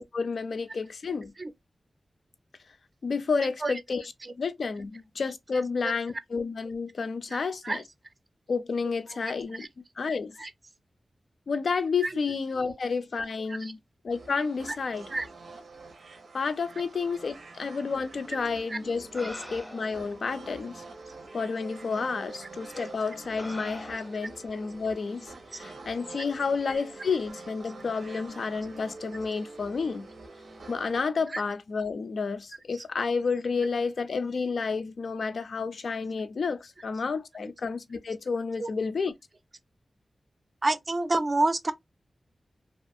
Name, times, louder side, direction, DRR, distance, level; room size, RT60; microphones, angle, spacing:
voice 1, 0.0-1.3 3.0-4.0 4.4-7.8 8.5-9.7 10.0-10.3 11.5-13.8 14.0-15.1 16.3-20.8 21.3-30.1 30.7-39.1, left 5 dB, 70° left, 0.3 m, -30 dB
voice 2, 3.4-3.8 4.2-4.3 5.8-5.9 7.3-7.4 7.6-7.8 9.1-9.2 9.5-9.7 10.4-10.5 12.0-12.2 12.7-12.8 13.5-13.7 14.7-14.8 15.1-15.3 18.7-18.8 23.9-24.0 25.5-25.6 31.3-31.4 32.7-32.8 38.6-38.7 40.6-41.7, right 2 dB, 35° right, 0.4 m, -29 dB
sound 1, 14.1-31.0, right 3 dB, 85° right, 0.6 m, -46 dB
sound 2, 18.5-18.6 19.1-20.1 21.0-21.1 21.9-22.1 22.7-23.0 23.4-24.3 25.6-25.8, left 1 dB, 10° left, 0.6 m, -44 dB
2.4 x 2.3 x 2.5 m
wide cardioid pair, 115°, 0 cm